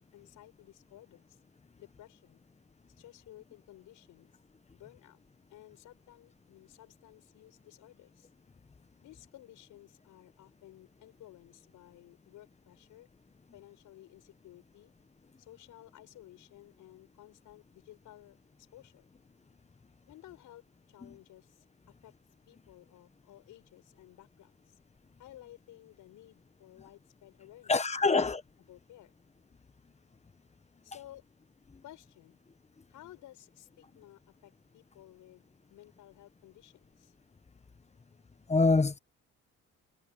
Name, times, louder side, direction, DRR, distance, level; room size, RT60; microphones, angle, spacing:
voice 1, 0.1-1.4 1.8-2.4 3.0-4.3 4.7-5.2 5.5-8.3 9.0-13.1 13.5-14.9 15.4-19.1 20.1-20.6 20.9-22.1 22.5-24.8 25.2-27.8 28.1-28.2 28.7-29.1 30.8-31.2 31.8-32.4 32.9-37.1, left 14 dB, 85° left, 5.8 m, -55 dB
voice 2, 27.7-28.4 38.5-39.0, left 3 dB, 20° left, 1.3 m, -25 dB
cardioid pair, 90°, 30 cm